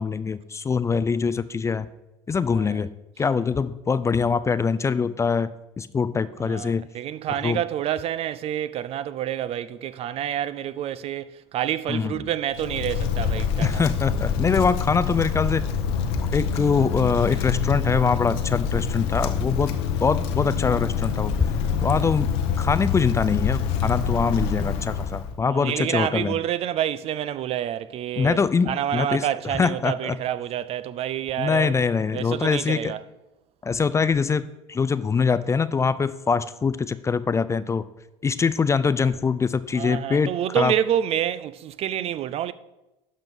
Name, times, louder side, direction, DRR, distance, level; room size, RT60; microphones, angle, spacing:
voice 1, 0.0-1.9 2.3-2.9 3.2-5.5 5.8-6.9 7.4-7.6 11.9-12.2 13.6-15.7 16.3-21.3 21.8-22.3 22.6-26.3 28.2-30.2 31.4-32.9 33.6-37.8 38.2-40.7, left 5 dB, 20° left, 0.4 m, -23 dB
voice 2, 2.5-2.9 3.3-3.4 6.4-13.9 25.4-28.4 28.7-31.7 32.1-33.0 39.7-42.5, right 11 dB, 45° right, 0.4 m, -28 dB
Wind, 12.5-25.3, left 6 dB, 70° left, 0.9 m, -26 dB
12.0 x 5.2 x 3.6 m
hypercardioid pair, 75°, 14 cm